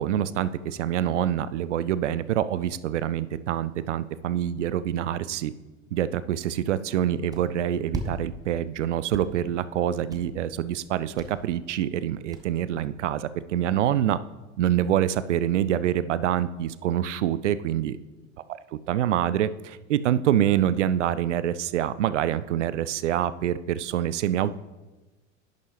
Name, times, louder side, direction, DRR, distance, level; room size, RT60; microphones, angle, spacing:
voice 1, 0.0-5.5 5.9-14.2 14.6-18.0 18.9-24.5, right 11 dB, 70° right, 16 dB, 0.5 m, -26 dB
sound 1, 7.3-7.4 7.9-8.1 8.4-8.7 8.9-9.8 10.1-10.4 10.9-11.3 11.6-11.7 11.9-12.0 12.3-12.9, right 2 dB, 10° right, 0.9 m, -36 dB
10.5 x 6.4 x 3.3 m, 1.2 s
figure-of-eight pair, 80°, 37 cm